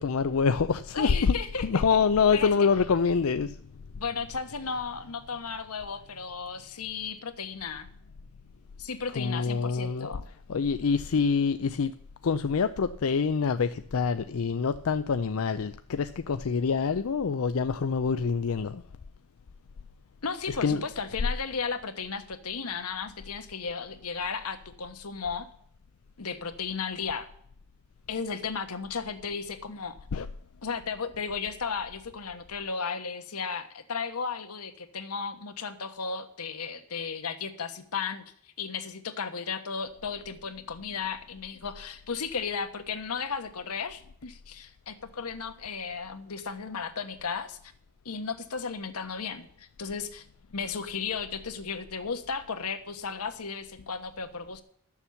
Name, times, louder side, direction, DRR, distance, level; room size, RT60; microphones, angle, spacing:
voice 1, 0.0-3.6 9.2-10.1 10.5-11.9 12.2-18.8 20.6-20.8 30.1-30.3, left 5 dB, 65° left, 0.5 m, -26 dB
voice 2, 0.9-1.8 2.3-2.5 3.9-7.9 8.8-10.2 20.2-25.5 26.2-27.3 28.1-30.0 30.6-38.2 38.6-47.6 48.0-50.2 50.5-54.6, left 5 dB, 90° left, 1.2 m, -34 dB
12.5 x 7.2 x 7.0 m
head